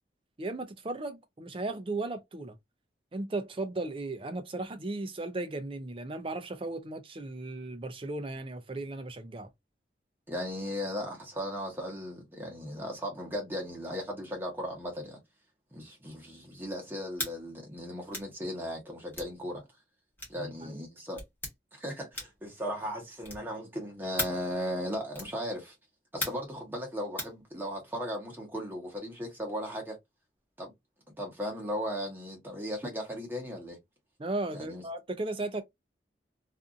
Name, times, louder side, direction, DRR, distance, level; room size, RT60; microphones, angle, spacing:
voice 1, 0.4-2.6 3.1-9.5 20.4-20.8 34.2-35.6, right 2 dB, 30° right, 0.5 m, -36 dB
voice 2, 10.3-15.2 15.7-19.6 20.3-21.2 21.7-25.7 26.1-30.0 30.6-30.7 31.2-33.8 34.5-34.8, equal, 10° right, 1.0 m, -37 dB
sound 1, 17.1-17.4 18.1-18.3 19.1-19.3 20.2-20.4 21.2-21.5 22.1-22.5 23.2-23.5 24.2-24.4 25.1-25.4 26.2-26.5 27.2-27.4, left 1 dB, 10° left, 1.0 m, -36 dB
2.6 x 2.5 x 2.5 m
head